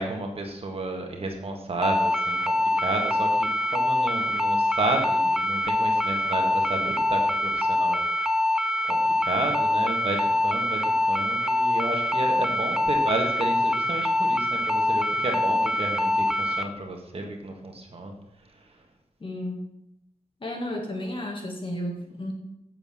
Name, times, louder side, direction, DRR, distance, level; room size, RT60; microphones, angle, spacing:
voice 1, 0.0-8.0 8.9-18.1, right 2 dB, 45° right, 2 dB, 1.8 m, -32 dB
sound 1, 1.8-16.6, left 1 dB, 5° right, 0.5 m, -24 dB
voice 2, 19.2-19.7 20.4-22.3, left 1 dB, 40° left, 1 dB, 2.3 m, -32 dB
7.7 x 7.1 x 7.2 m, 0.84 s
wide cardioid pair, 135°, 13 cm